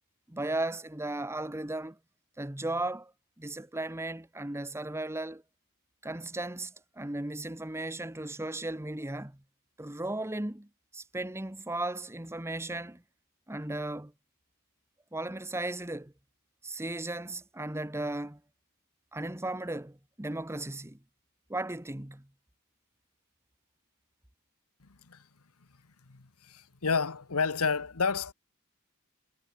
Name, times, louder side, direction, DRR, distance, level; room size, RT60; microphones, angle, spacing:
voice 1, 0.3-2.0 2.4-3.1 3.4-5.4 6.0-9.4 9.8-10.7 10.9-13.0 13.5-14.1 15.1-16.1 16.6-18.4 19.1-21.0 21.5-22.3, right 2 dB, 10° right, 1.1 m, -36 dB
voice 2, 26.1-28.3, left 5 dB, 80° left, 1.3 m, -30 dB
head